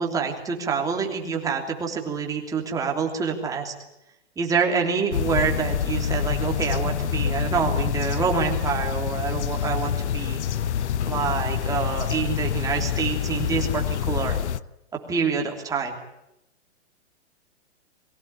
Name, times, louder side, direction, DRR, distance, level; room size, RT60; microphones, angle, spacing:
voice 1, 0.0-3.7 4.4-10.4 11.0-14.4 15.1-15.9, right 6 dB, 10° right, 1 dB, 3.2 m, -26 dB
sound 1, 5.1-14.6, left 9 dB, 75° left, 1.0 m, -26 dB
23.5 x 16.5 x 9.9 m, 0.85 s
hypercardioid pair, 165°, 34 cm